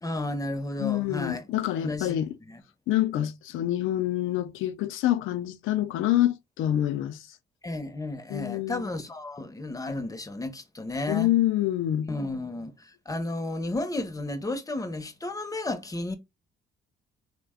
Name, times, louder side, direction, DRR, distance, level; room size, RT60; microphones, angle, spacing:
voice 1, 0.0-1.5 1.8-2.2 2.5-2.6 7.6-11.3 12.1-16.2, left 2 dB, 15° left, 0.6 m, -33 dB
voice 2, 0.8-2.3 2.9-7.3 8.3-8.9 11.1-12.1, left 13 dB, 85° left, 0.4 m, -26 dB
3.3 x 2.1 x 3.5 m
cardioid pair, 90°, 20 cm